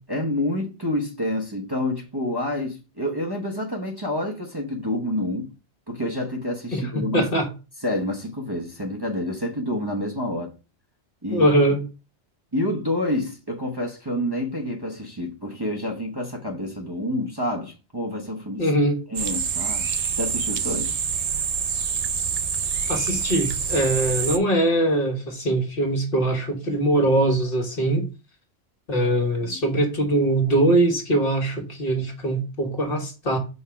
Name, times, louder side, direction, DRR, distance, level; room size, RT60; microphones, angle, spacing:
voice 1, 0.1-5.5 5.9-7.3 7.8-10.5 11.2-11.5 12.5-18.7 19.1-19.9 20.1-21.0 29.4-29.6, left 1 dB, 25° right, 0.9 m, -28 dB
voice 2, 6.7-7.5 11.3-11.8 18.6-19.0 22.9-28.0 28.9-33.4, right 1 dB, 55° left, 1.6 m, -22 dB
sound 1, 19.1-24.4, right 7 dB, 50° right, 0.5 m, -26 dB
5.3 x 3.6 x 5.7 m
omnidirectional pair, 1.2 m